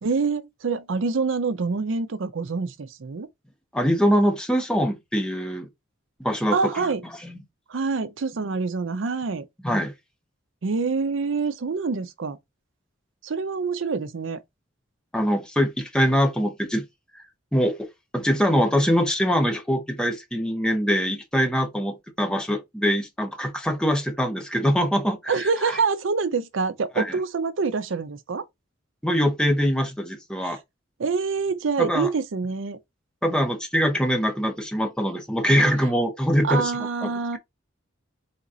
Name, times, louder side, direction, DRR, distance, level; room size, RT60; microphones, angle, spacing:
voice 1, 0.0-3.3 6.5-7.0 7.7-9.5 10.6-12.4 13.2-14.4 25.3-28.4 30.4-30.6 31.0-32.8 36.4-37.4, right 4 dB, 75° right, 0.5 m, -26 dB
voice 2, 3.7-5.7 6.2-6.9 7.2-7.4 9.6-9.9 15.1-16.8 17.1-17.2 17.5-17.9 18.1-25.8 26.9-27.2 29.0-30.6 31.8-32.1 33.2-37.4, equal, 5° left, 0.9 m, -23 dB
4.0 x 2.9 x 3.6 m
head